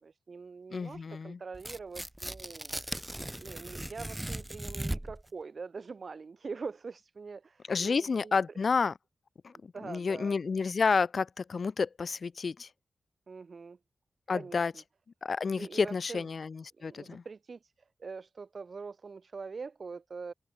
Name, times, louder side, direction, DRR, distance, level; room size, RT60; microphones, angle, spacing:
voice 1, 0.0-2.7 3.4-8.4 9.7-10.4 13.3-13.8 14.3-14.8 15.6-16.2 16.8-17.7 18.0-20.3, right 4 dB, 45° right, 1.5 m, -44 dB
voice 2, 0.7-1.4 7.7-8.9 9.4-12.7 14.3-14.7 15.2-17.2, left 5 dB, 45° left, 1.1 m, -30 dB
Tearing, 1.5-5.3, right 1 dB, 10° right, 0.5 m, -38 dB
wide cardioid pair, 175°, 0 cm